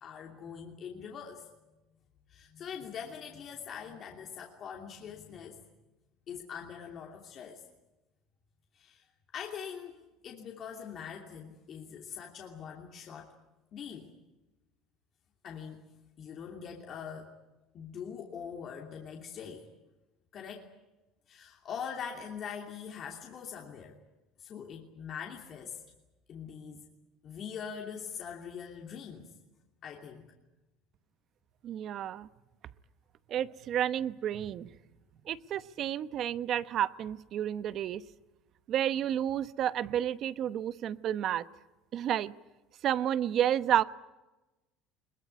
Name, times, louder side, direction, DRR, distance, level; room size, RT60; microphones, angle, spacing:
voice 1, 0.0-1.5 2.3-5.6 6.3-7.6 8.7-9.0 9.3-10.0 10.2-13.3 13.7-14.1 15.4-15.8 16.2-17.3 17.7-19.7 20.3-20.7 21.3-24.0 24.4-25.8 26.3-26.9 27.2-29.3 29.8-30.3, left 7 dB, 40° left, 1 dB, 2.9 m, -43 dB
voice 2, 31.6-32.3 33.3-34.7 35.3-38.0 38.7-41.4 41.9-42.3 42.8-43.8, right 10 dB, 45° right, 14 dB, 1.0 m, -31 dB
22.0 x 21.0 x 9.5 m, 1.1 s
cardioid pair, 130°, 0 cm